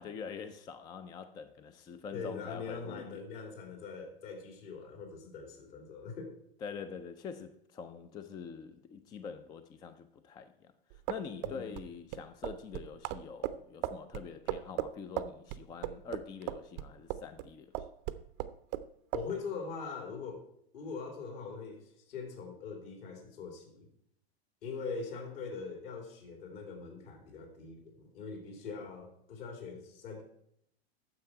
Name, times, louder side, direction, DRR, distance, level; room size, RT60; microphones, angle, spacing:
voice 1, 0.0-3.2 6.6-17.9, left 6 dB, 15° left, 0.3 m, -45 dB
voice 2, 2.1-6.4 11.4-11.7 19.1-20.5 20.7-23.9 24.6-30.2, left 5 dB, 60° left, 3.0 m, -42 dB
sound 1, 10.9-17.5 17.7-18.9 19.1-19.3, right 13 dB, 45° right, 0.6 m, -37 dB
9.5 x 6.9 x 4.4 m
hypercardioid pair, 105°, 32 cm